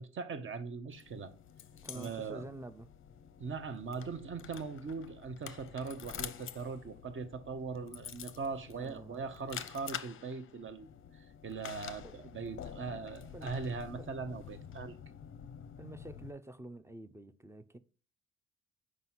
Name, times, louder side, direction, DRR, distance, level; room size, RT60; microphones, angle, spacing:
voice 1, 0.0-1.3 1.9-2.4 3.4-10.9 11.1-15.0, right 5 dB, 40° right, 0.9 m, -40 dB
sound 1, 0.9-16.3, left 9 dB, 45° left, 0.5 m, -48 dB
voice 2, 1.8-2.9 8.8-9.2 12.0-12.2 12.5-12.6 13.3-13.6 14.0-14.1 15.8-17.8, right 1 dB, 10° right, 0.4 m, -48 dB
4.9 x 4.0 x 5.8 m
cardioid pair, 90°, 30 cm